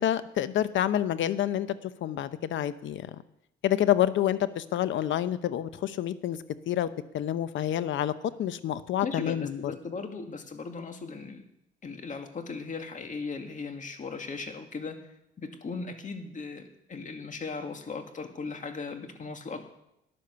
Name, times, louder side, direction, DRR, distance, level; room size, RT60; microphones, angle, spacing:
voice 1, 0.0-3.2 3.6-6.4 6.7-6.9 7.1-8.1 8.4-9.7, left 11 dB, 75° left, 14 dB, 0.8 m, -28 dB
voice 2, 9.0-11.5 11.8-15.0 15.4-19.6, left 4 dB, 40° left, 5 dB, 2.0 m, -38 dB
13.0 x 10.0 x 6.9 m, 0.83 s
cardioid pair, 90°, 20 cm